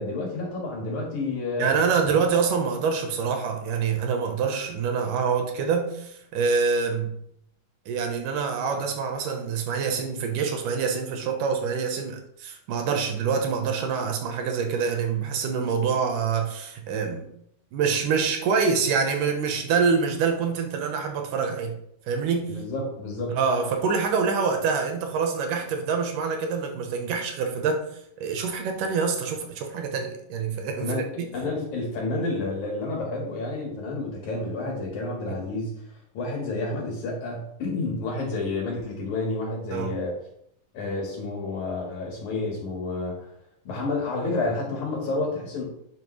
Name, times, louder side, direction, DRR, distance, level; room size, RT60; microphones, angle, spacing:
voice 1, 0.0-1.7 22.5-23.4 30.8-35.8 36.1-40.1 40.7-43.3 43.6-45.6, left 2 dB, 65° left, -2 dB, 3.1 m, -30 dB
voice 2, 1.6-7.1 7.9-17.3 17.7-21.7 22.1-22.6 23.4-27.8 28.2-31.3 35.3-35.4 39.7-39.9, right 5 dB, 80° right, 4 dB, 2.6 m, -26 dB
10.5 x 5.3 x 3.2 m, 0.74 s
omnidirectional pair, 3.8 m